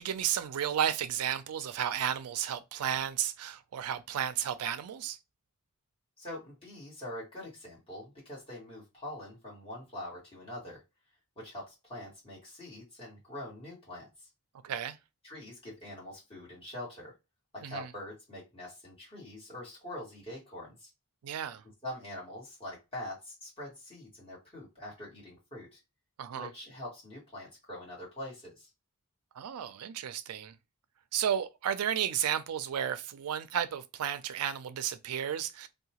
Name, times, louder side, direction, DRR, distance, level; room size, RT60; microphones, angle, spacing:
voice 1, 0.0-5.2 14.6-15.0 17.6-17.9 21.2-21.6 26.2-26.5 29.4-30.5 31.1-35.7, right 9 dB, 75° right, 0.4 m, -33 dB
voice 2, 6.2-10.8 11.3-14.3 15.2-17.1 17.5-20.9 21.8-25.8 26.3-28.7, left 1 dB, 25° left, 1.6 m, -44 dB
2.7 x 2.2 x 2.8 m
head